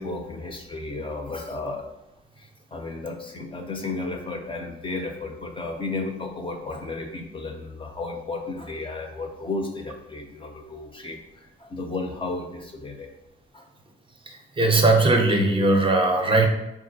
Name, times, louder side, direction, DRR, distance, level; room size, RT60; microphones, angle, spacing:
voice 1, 0.0-1.9 2.4-13.1 13.5-13.6, left 3 dB, 25° left, 3 dB, 0.4 m, -33 dB
voice 2, 14.6-16.5, right 2 dB, 25° right, 3 dB, 0.5 m, -19 dB
3.6 x 2.4 x 2.7 m, 0.93 s
cardioid pair, 90°, 20 cm